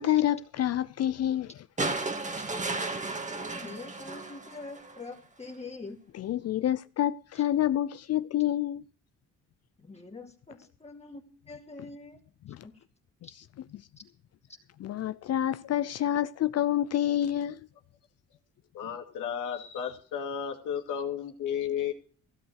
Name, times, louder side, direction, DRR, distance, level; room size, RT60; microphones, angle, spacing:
voice 1, 0.0-1.6 6.1-8.8 12.5-12.7 14.8-17.6, left 12 dB, 55° left, 0.5 m, -28 dB
sound 1, 1.8-5.1 6.4-6.5, right 3 dB, 25° right, 1.9 m, -34 dB
voice 2, 3.1-6.0 7.4-7.5 9.8-12.2 12.6-12.8 13.2-13.3, left 3 dB, 20° left, 2.3 m, -44 dB
voice 3, 18.7-21.9, left 8 dB, 85° left, 2.6 m, -33 dB
16.0 x 7.9 x 6.4 m
cardioid pair, 90°, 30 cm